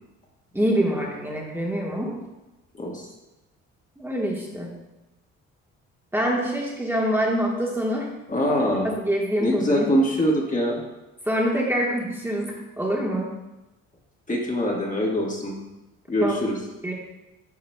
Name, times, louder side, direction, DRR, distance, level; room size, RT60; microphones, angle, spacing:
voice 1, 0.5-2.2 4.0-4.7 6.1-8.1 8.7-9.9 11.2-13.3 16.2-16.4 16.8-16.9, equal, 10° right, -3 dB, 1.5 m, -25 dB
voice 2, 2.7-3.1 8.3-8.9 9.4-10.8 14.3-15.5 16.1-16.6, equal, 25° left, -2 dB, 1.5 m, -23 dB
8.8 x 5.6 x 2.3 m, 1.0 s
supercardioid pair, 70°, 29 cm